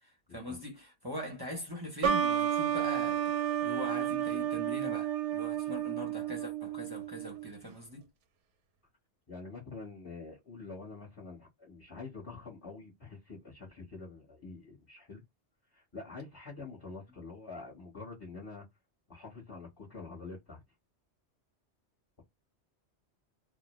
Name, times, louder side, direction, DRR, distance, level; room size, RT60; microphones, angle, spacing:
voice 1, 0.0-3.3 3.6-8.1, equal, 25° right, 0.7 m, -42 dB
sound 1, 2.0-7.5, right 9 dB, 85° right, 0.9 m, -31 dB
voice 2, 9.3-15.2 15.7-18.6 19.1-20.6, left 3 dB, 25° left, 1.0 m, -46 dB
2.2 x 2.1 x 2.9 m
omnidirectional pair, 1.2 m